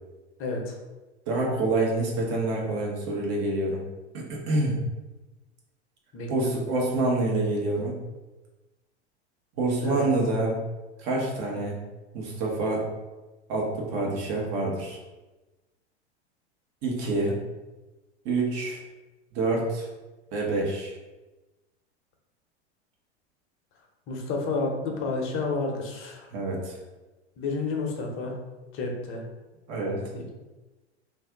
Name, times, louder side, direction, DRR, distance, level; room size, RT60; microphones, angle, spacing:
voice 1, 0.4-0.8 6.1-6.6 9.8-10.1 17.2-17.3 24.1-26.3 27.4-28.4 28.7-29.2 30.1-30.3, left 3 dB, 40° left, 1 dB, 0.7 m, -30 dB
voice 2, 1.3-3.8 4.1-4.8 6.3-8.0 9.6-10.6 11.0-11.8 12.1-12.8 13.5-15.0 16.8-17.3 18.2-18.8 19.3-19.8 20.3-20.9 26.3-26.8 29.7-30.0, right 2 dB, 45° right, -2 dB, 1.0 m, -27 dB
2.6 x 2.4 x 3.5 m, 1.1 s
hypercardioid pair, 90°, 35 cm